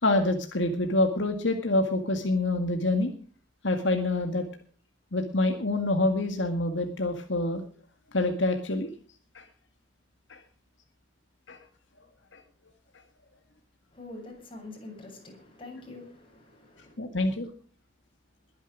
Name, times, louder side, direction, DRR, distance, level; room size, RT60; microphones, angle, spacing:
voice 1, 0.0-3.1 3.6-4.5 5.1-7.6 8.1-8.9 9.3-9.4 10.3-10.4 11.5-11.6 12.3-12.4 17.0-17.5, left 2 dB, 75° left, 2.1 m, -26 dB
voice 2, 13.9-17.0, left 2 dB, 30° left, 7.6 m, -45 dB
22.0 x 10.0 x 5.0 m
head